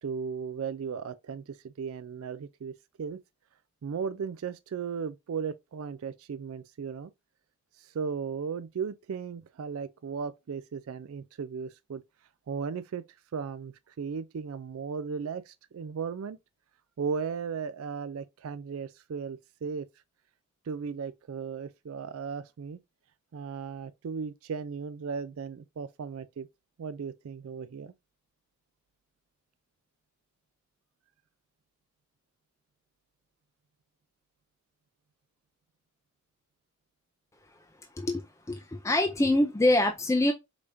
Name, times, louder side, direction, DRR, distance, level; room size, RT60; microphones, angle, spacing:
voice 1, 0.0-2.7 3.0-3.2 3.8-7.1 7.8-12.0 12.5-13.0 13.3-16.4 17.0-19.9 20.7-22.8 23.3-26.5 26.8-27.9, right 6 dB, 75° right, 0.4 m, -36 dB
voice 2, 38.0-40.3, left 1 dB, 15° left, 0.4 m, -25 dB
4.9 x 3.4 x 2.6 m
head